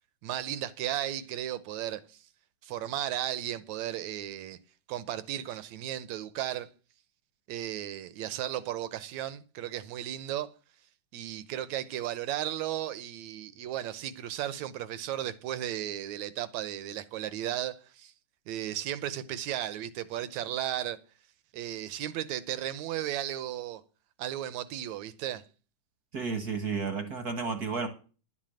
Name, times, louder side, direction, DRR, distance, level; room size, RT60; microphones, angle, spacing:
voice 1, 0.2-2.3 2.6-4.6 4.9-6.7 7.5-10.5 11.1-18.1 18.5-21.0 21.5-23.8 24.2-25.4, right 12 dB, 75° right, 1.9 m, -35 dB
voice 2, 26.1-27.9, right 5 dB, 50° right, 1.1 m, -32 dB
11.0 x 7.5 x 7.7 m
omnidirectional pair, 3.7 m